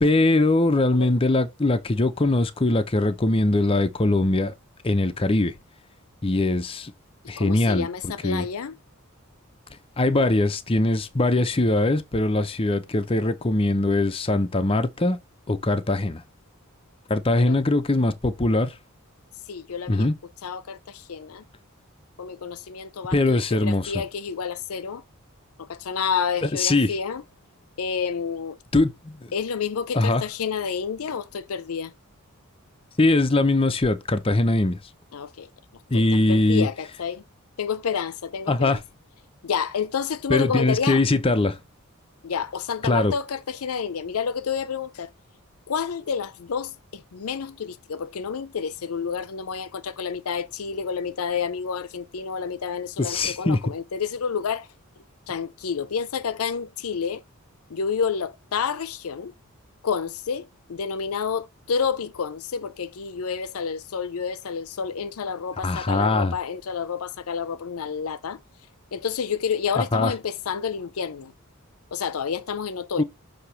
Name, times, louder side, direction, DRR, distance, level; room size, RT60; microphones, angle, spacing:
voice 1, 0.0-4.5 4.8-5.5 6.2-6.9 7.3-8.5 10.0-15.2 15.5-16.2 17.1-18.7 19.9-20.2 23.1-23.9 26.4-26.9 28.7-29.3 29.9-30.2 33.0-34.8 35.9-36.7 38.5-38.8 40.3-41.6 42.8-43.1 53.0-53.6 65.6-66.4 69.8-70.1 73.0-73.1, left 2 dB, 25° left, 0.6 m, -21 dB
voice 2, 7.4-8.7 17.3-17.6 19.5-20.1 20.4-21.4 22.2-25.0 25.6-27.2 27.8-28.6 29.3-31.9 35.1-35.5 35.9-37.2 37.6-38.8 39.4-41.0 42.2-45.1 45.7-54.7 55.3-57.2 57.7-59.3 59.8-68.4 68.9-71.3 71.9-73.0, left 6 dB, 80° left, 0.5 m, -29 dB
6.5 x 2.9 x 5.5 m
head